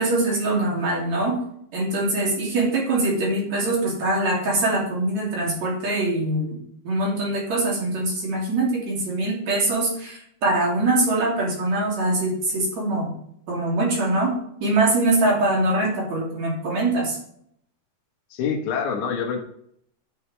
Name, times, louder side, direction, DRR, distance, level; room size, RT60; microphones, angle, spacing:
voice 1, 0.0-1.4 1.7-6.6 6.8-13.1 13.5-14.3 14.6-17.2, right 2 dB, 60° right, -3 dB, 4.0 m, -23 dB
voice 2, 18.3-19.4, left 6 dB, 70° left, 3 dB, 2.6 m, -26 dB
11.0 x 6.5 x 3.4 m, 0.70 s
omnidirectional pair, 3.6 m